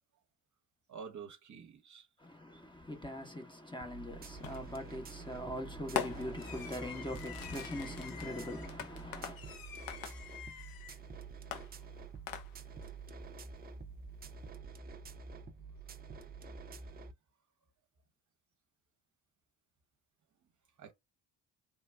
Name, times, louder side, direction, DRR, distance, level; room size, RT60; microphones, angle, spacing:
voice 1, 0.9-2.1 20.8-20.9, right 6 dB, 40° right, 0.8 m, -48 dB
voice 2, 2.2-9.4, left 1 dB, 10° left, 0.8 m, -42 dB
sound 1, 3.8-17.1, right 4 dB, 20° right, 0.4 m, -48 dB
Fireworks, 4.4-4.8 6.0-11.0 11.5-12.8, left 9 dB, 50° left, 0.7 m, -43 dB
3.3 x 2.1 x 2.3 m
hypercardioid pair, 45°, 46 cm